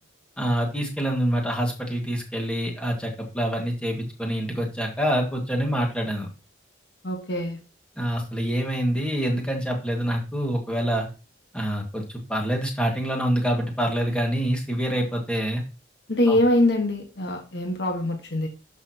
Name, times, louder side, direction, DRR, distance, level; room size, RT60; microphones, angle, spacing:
voice 1, 0.4-6.3 8.0-11.1 11.5-15.6 16.3-16.4, equal, 5° left, 1 dB, 1.8 m, -26 dB
voice 2, 7.0-7.6 16.1-18.5, left 1 dB, 60° left, 3 dB, 1.4 m, -23 dB
11.0 x 6.1 x 2.9 m, 0.33 s
head